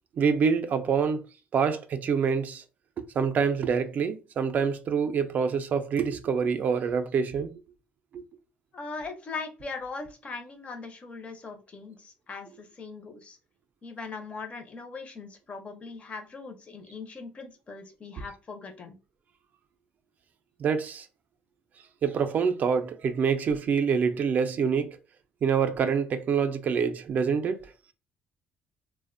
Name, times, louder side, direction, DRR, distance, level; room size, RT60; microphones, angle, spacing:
voice 1, 0.2-1.2 1.5-2.6 3.0-7.5 8.1-8.2 20.6-21.1 22.0-25.0 25.4-27.7, right 6 dB, 50° right, 0.3 m, -26 dB
voice 2, 8.7-13.4 13.8-19.0, left 4 dB, 35° left, 0.5 m, -40 dB
2.4 x 2.1 x 2.4 m
cardioid pair, 120°, 4 cm